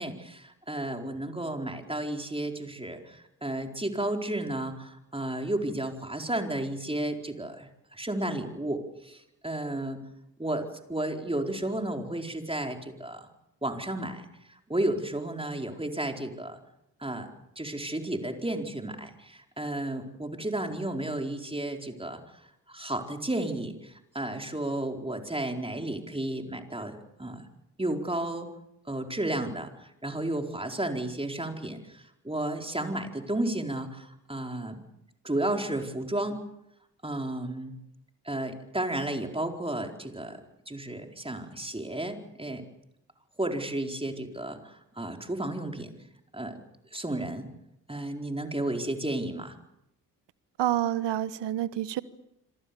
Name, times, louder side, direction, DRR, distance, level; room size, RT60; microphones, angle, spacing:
voice 1, 0.0-10.0 10.4-10.6 10.9-13.3 13.6-14.3 14.7-16.6 17.0-17.3 17.6-22.2 22.7-27.4 27.8-28.5 28.9-34.8 35.2-36.4 37.0-37.8 38.2-40.4 40.7-42.6 43.4-45.9 46.3-46.6 46.9-47.5 47.9-49.5, right 1 dB, 10° right, 4 dB, 4.5 m, -32 dB
voice 2, 50.6-52.0, right 12 dB, 60° right, 17 dB, 1.4 m, -28 dB
26.0 x 25.5 x 7.1 m, 0.83 s
hypercardioid pair, 45°, 47 cm